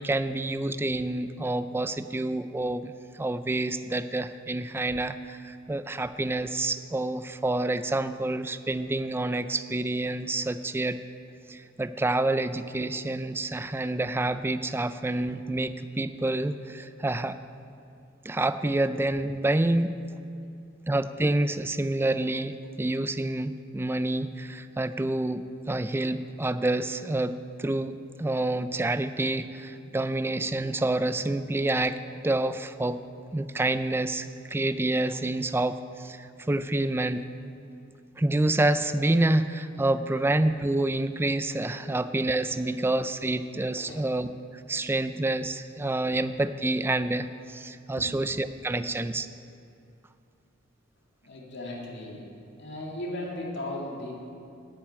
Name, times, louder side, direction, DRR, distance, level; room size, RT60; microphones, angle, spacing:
voice 1, 0.0-11.0 11.5-17.4 18.2-19.9 20.9-32.0 32.2-33.0 33.3-37.2 38.2-44.3 44.7-49.3, right 2 dB, 10° right, 12 dB, 0.3 m, -28 dB
voice 2, 51.2-52.3 52.6-54.1, left 1 dB, 60° left, -2 dB, 2.5 m, -36 dB
9.4 x 9.0 x 8.8 m, 2.6 s
head